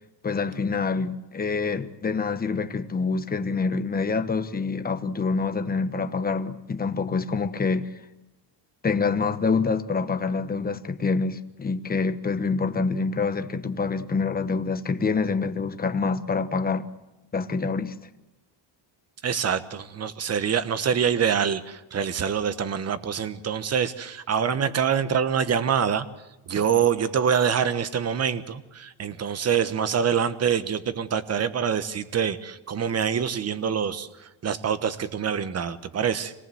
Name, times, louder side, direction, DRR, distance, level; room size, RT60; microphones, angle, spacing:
voice 1, 0.2-7.9 8.8-16.9 17.3-17.9, left 4 dB, 20° left, 1.1 m, -26 dB
voice 2, 19.2-26.1 26.5-36.3, right 7 dB, 35° right, 1.2 m, -25 dB
26.0 x 19.0 x 7.8 m
cardioid pair, 140°, 44 cm